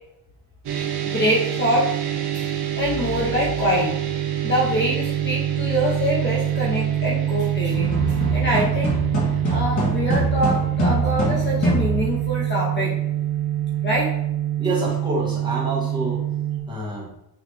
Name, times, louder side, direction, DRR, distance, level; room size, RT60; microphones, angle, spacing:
sound 1, 0.6-16.6, right 11 dB, 65° right, 1.3 m, -25 dB
voice 1, 1.1-1.9 2.3-3.9 4.4-9.0 9.5-13.0 13.8-14.1, equal, 25° left, -3 dB, 0.9 m, -24 dB
sound 2, 7.7-12.3, equal, 40° left, 1.9 m, -25 dB
voice 2, 14.6-16.2 16.7-17.1, right 1 dB, 10° right, -4 dB, 1.6 m, -27 dB
8.9 x 3.2 x 3.4 m, 0.83 s
cardioid pair, 170°, 42 cm